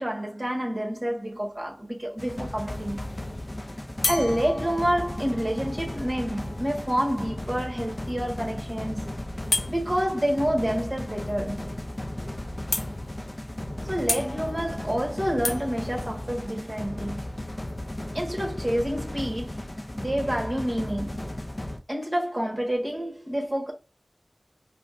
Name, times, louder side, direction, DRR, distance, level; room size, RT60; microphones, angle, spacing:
voice 1, 0.0-3.0 4.1-9.1 9.7-11.7 13.8-17.2 18.1-19.7 19.9-21.3 21.9-23.7, equal, 25° right, 1.5 m, -28 dB
sound 1, 1.2-1.7 4.0-7.7 9.5-9.7 11.7-11.8 12.1-12.2 12.7-13.3 14.1-16.8, left 2 dB, 85° left, 0.5 m, -33 dB
sound 2, 2.2-21.8, left 1 dB, 30° left, 0.5 m, -35 dB
4.9 x 2.2 x 2.5 m
wide cardioid pair, 60°, 0 cm